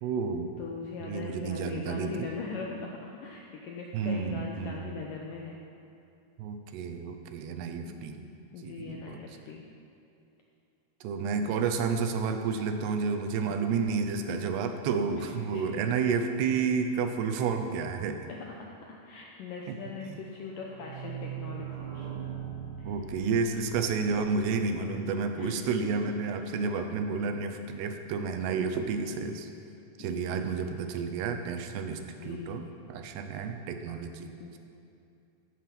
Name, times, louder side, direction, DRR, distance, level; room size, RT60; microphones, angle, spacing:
voice 1, 0.0-0.5 1.0-2.3 3.9-4.8 6.4-8.2 8.6-9.2 11.0-18.3 19.7-19.8 22.8-29.5 30.0-32.6 32.9-34.6, right 5 dB, 80° right, 6 dB, 2.9 m, -31 dB
voice 2, 0.6-5.6 7.9-9.6 13.4-13.7 15.1-15.7 18.3-18.7 19.0-22.1 22.8-23.0 25.4-25.7 26.4-26.6 30.0-30.9 32.2-32.7 34.4-34.6, left 4 dB, 80° left, -1 dB, 2.0 m, -41 dB
sound 1, 20.3-25.9 26.2-26.3 26.5-26.6 26.8-26.9, right 8 dB, 60° right, 1.8 m, -41 dB
14.5 x 9.4 x 5.9 m, 2.6 s
omnidirectional pair, 4.9 m